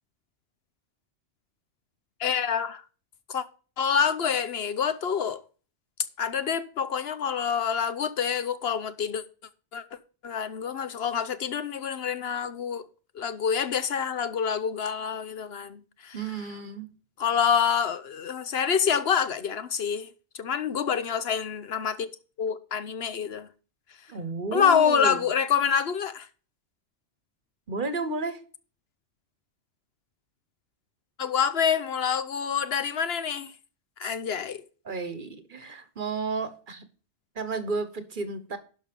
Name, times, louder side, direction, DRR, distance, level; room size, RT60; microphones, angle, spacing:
voice 1, 2.2-2.8 3.3-3.4 3.8-5.4 6.2-9.2 9.7-9.8 10.2-12.8 13.1-16.2 17.2-20.1 20.4-22.1 22.4-23.5 24.5-26.3 31.2-33.5 34.0-34.6, left 7 dB, 65° left, 1.0 m, -27 dB
voice 2, 16.1-16.9 24.1-25.2 27.7-28.4 34.0-34.1 34.8-36.8 37.4-38.6, right 3 dB, 45° right, 1.2 m, -32 dB
11.5 x 5.4 x 5.2 m
omnidirectional pair, 1.2 m